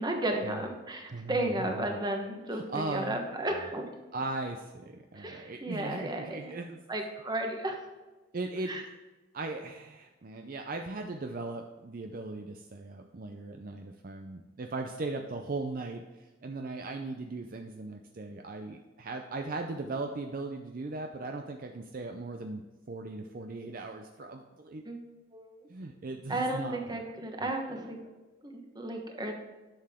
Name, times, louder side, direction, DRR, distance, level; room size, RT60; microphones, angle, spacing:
voice 1, 0.0-3.8 5.1-6.6 6.9-7.8 8.7-8.8 24.8-25.0 25.3-25.5 26.3-28.0 28.4-29.3, right 1 dB, 20° right, 3 dB, 1.1 m, -33 dB
voice 2, 1.1-2.0 2.5-3.2 4.1-6.8 8.3-8.8 9.3-22.6 22.9-24.8 25.7-27.0, right 3 dB, 50° right, 4 dB, 0.5 m, -38 dB
11.0 x 6.7 x 3.6 m, 1.2 s
head